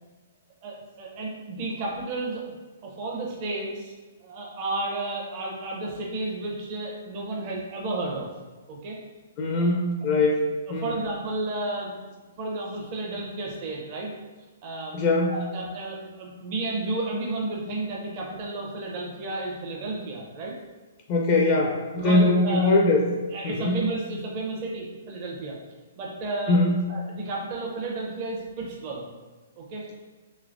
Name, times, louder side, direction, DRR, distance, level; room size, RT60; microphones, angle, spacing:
voice 1, 0.6-2.5 2.8-3.9 4.2-8.3 8.7-9.0 9.6-9.7 10.0-10.1 10.7-12.0 12.4-14.1 14.6-15.0 15.3-20.5 21.9-22.7 23.3-25.6 26.0-26.6 26.9-29.1 29.6-29.8, right 2 dB, 40° right, -2 dB, 0.8 m, -32 dB
voice 2, 9.4-10.9 14.9-15.4 21.1-23.0 23.4-23.8 26.5-26.9, left 2 dB, 40° left, 1 dB, 0.4 m, -22 dB
3.1 x 3.1 x 2.5 m, 1.3 s
hypercardioid pair, 125°, 0 cm